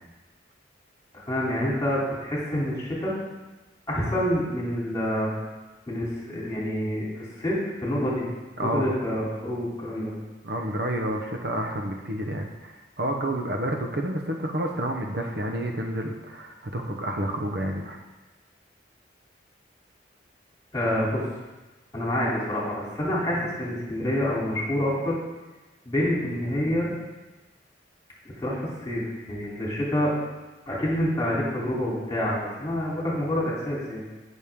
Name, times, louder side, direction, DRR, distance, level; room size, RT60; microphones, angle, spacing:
voice 1, 1.1-3.1 3.9-5.3 5.9-8.2 8.6-10.1 20.7-21.2 21.9-25.2 25.8-26.9 28.2-30.1 30.6-34.0, equal, 20° left, -5 dB, 3.3 m, -27 dB
voice 2, 8.6-9.0 10.4-18.0, right 1 dB, 60° right, 2 dB, 1.0 m, -29 dB
17.0 x 6.4 x 3.7 m, 1.1 s
head